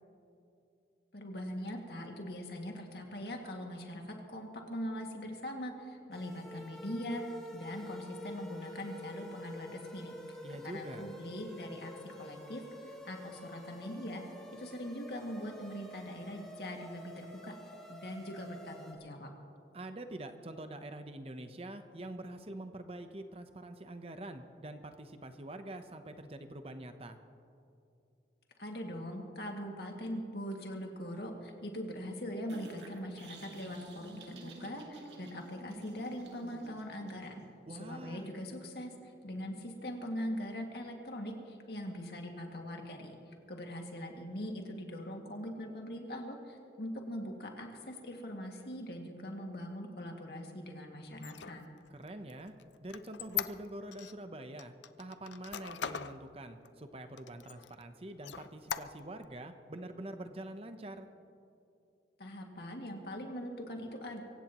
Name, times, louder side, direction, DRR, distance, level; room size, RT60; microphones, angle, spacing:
voice 1, 1.1-7.2 7.5-10.2 10.6-14.2 14.5-17.6 17.9-19.3 28.6-37.4 37.7-51.6 62.2-64.2, equal, 65° left, 1 dB, 2.2 m, -42 dB
sound 1, 6.1-18.9, left 1 dB, 5° left, 2.4 m, -48 dB
voice 2, 10.4-11.1 19.7-27.2 37.7-38.3 52.0-52.5 52.8-61.1, right 1 dB, 35° right, 8 dB, 0.8 m, -45 dB
sound 2, 32.5-37.5, right 2 dB, 75° right, 2.1 m, -51 dB
Squeak, 51.1-54.1 54.6-56.2 56.6-56.7 57.2-57.8 58.2-59.3, left 9 dB, 85° left, 0.6 m, -40 dB
24.5 x 16.0 x 3.1 m, 2.6 s
head